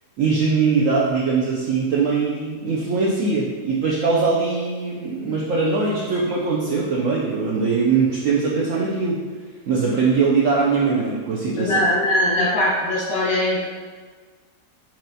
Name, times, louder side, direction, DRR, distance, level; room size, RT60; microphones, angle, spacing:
voice 1, 0.2-9.2 9.7-11.8, right 4 dB, 75° right, -4 dB, 0.7 m, -21 dB
voice 2, 11.6-13.7, left 1 dB, 75° left, -6 dB, 2.0 m, -21 dB
5.9 x 3.0 x 2.7 m, 1.5 s
omnidirectional pair, 1.9 m